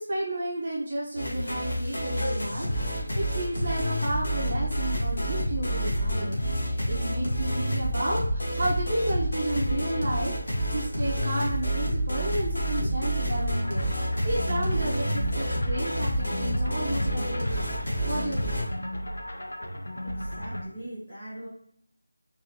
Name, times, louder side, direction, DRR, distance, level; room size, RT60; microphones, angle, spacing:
voice 1, 0.0-17.6 18.0-18.6, right 1 dB, 30° right, -4 dB, 0.8 m, -32 dB
sound 1, 1.2-18.6, equal, 55° left, 1.5 m, -28 dB
sound 2, 13.6-20.6, equal, 80° left, 0.8 m, -35 dB
voice 2, 20.0-21.5, right 1 dB, 20° left, -10 dB, 1.6 m, -41 dB
3.9 x 2.7 x 3.1 m, 0.64 s
figure-of-eight pair, 180°, 0 cm